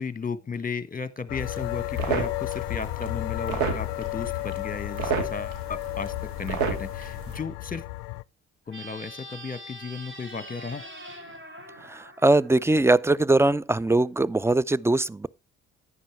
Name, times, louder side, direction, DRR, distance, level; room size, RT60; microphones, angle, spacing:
voice 1, 0.0-7.8 8.7-10.8, left 5 dB, 25° left, 1.4 m, -35 dB
sound 1, 1.3-8.2, left 22 dB, 80° left, 0.5 m, -33 dB
sound 2, 1.4-7.4, right 6 dB, 80° right, 2.2 m, -32 dB
sound 3, 8.7-13.1, right 1 dB, 40° right, 3.6 m, -44 dB
voice 2, 11.8-15.3, right 2 dB, 10° right, 0.5 m, -21 dB
10.0 x 10.0 x 3.2 m
hypercardioid pair, 50°, 32 cm